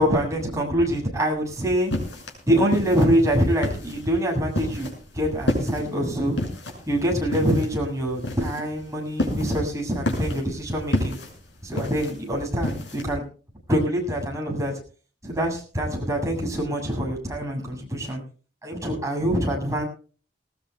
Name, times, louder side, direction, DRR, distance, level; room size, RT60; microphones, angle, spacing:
voice 1, 0.0-1.9 2.5-4.9 5.1-6.4 6.9-11.2 11.6-13.2 13.7-14.7 15.2-18.2 18.6-19.8, equal, 20° right, 0 dB, 7.4 m, -24 dB
sound 1, 1.5-13.1, left 1 dB, 80° left, 6.3 m, -31 dB
21.0 x 19.0 x 2.3 m, 0.39 s
head